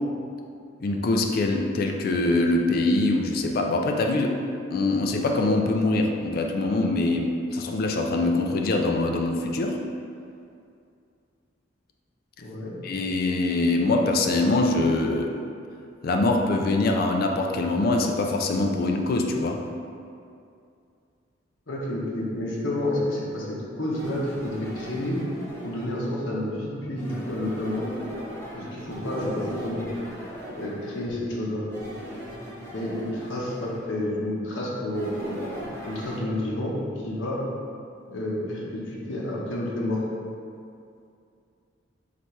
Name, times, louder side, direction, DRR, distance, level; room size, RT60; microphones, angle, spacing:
voice 1, 0.8-4.4 4.7-9.8 12.8-15.3 16.0-19.6, left 2 dB, 50° left, 2 dB, 0.3 m, -23 dB
voice 2, 12.4-12.7 21.7-25.2 25.6-27.8 28.5-29.9 30.5-31.6 32.7-35.3 35.9-36.7 37.0-37.4 38.1-40.0, left 1 dB, 80° left, -4 dB, 0.8 m, -30 dB
sound 1, 23.9-26.1 27.0-31.1 31.7-33.9 34.9-36.2, equal, 15° left, 0.7 m, -37 dB
4.1 x 3.3 x 3.1 m, 2.4 s
head